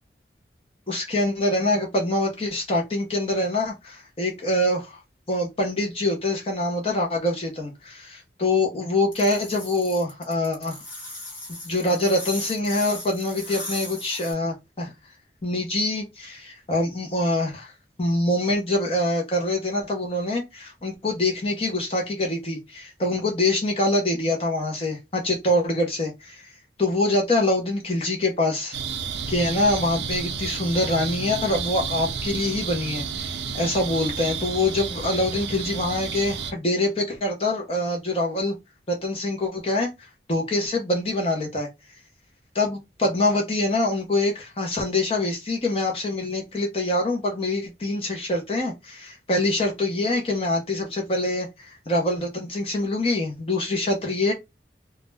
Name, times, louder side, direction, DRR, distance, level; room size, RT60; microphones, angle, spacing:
voice 1, 0.9-5.0 5.3-10.8 11.6-14.9 15.4-17.7 18.0-26.5 26.8-28.8 29.3-38.6 38.9-39.9 40.3-41.7 42.5-54.3, left 2 dB, 30° left, 0.6 m, -25 dB
sound 1, 9.1-14.3, left 2 dB, 50° left, 1.4 m, -37 dB
sound 2, 28.7-36.5, right 6 dB, 75° right, 0.4 m, -31 dB
2.4 x 2.1 x 3.1 m
head